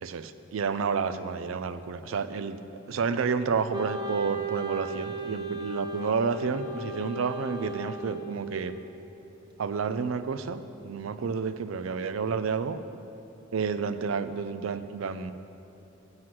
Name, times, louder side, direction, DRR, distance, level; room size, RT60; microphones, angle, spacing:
voice 1, 0.0-2.6 2.9-8.7 9.6-12.8 13.5-15.3, right 5 dB, 90° right, 12 dB, 0.4 m, -30 dB
Wind instrument woodwind instrument, 3.7-8.8, right 2 dB, 20° right, 0.6 m, -36 dB
7.7 x 5.9 x 7.7 m, 2.8 s
head